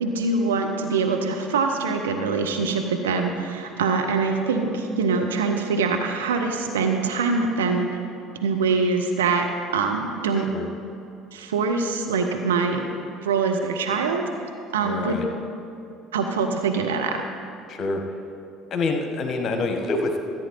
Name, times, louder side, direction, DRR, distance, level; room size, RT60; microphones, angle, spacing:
voice 1, 0.0-7.9 8.4-10.5 11.3-12.9 13.2-15.2 16.1-17.2, right 4 dB, 75° right, 4 dB, 0.7 m, -24 dB
voice 2, 14.8-15.3 17.7-18.0 18.7-20.2, left 3 dB, 40° left, 4 dB, 1.3 m, -26 dB
14.0 x 8.6 x 4.1 m, 2.7 s
figure-of-eight pair, 60°, 0 cm